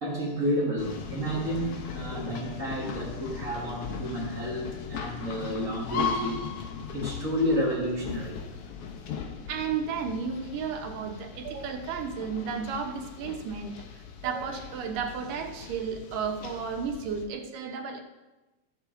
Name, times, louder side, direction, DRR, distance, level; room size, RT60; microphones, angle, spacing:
voice 1, 0.0-6.5 6.9-8.4, equal, 30° right, -4 dB, 1.7 m, -30 dB
sound 1, 0.8-17.3, left 6 dB, 70° left, 1.4 m, -38 dB
voice 2, 9.5-13.7 14.2-18.0, right 6 dB, 85° right, 3 dB, 2.7 m, -33 dB
14.0 x 8.1 x 3.8 m, 1.1 s
omnidirectional pair, 3.7 m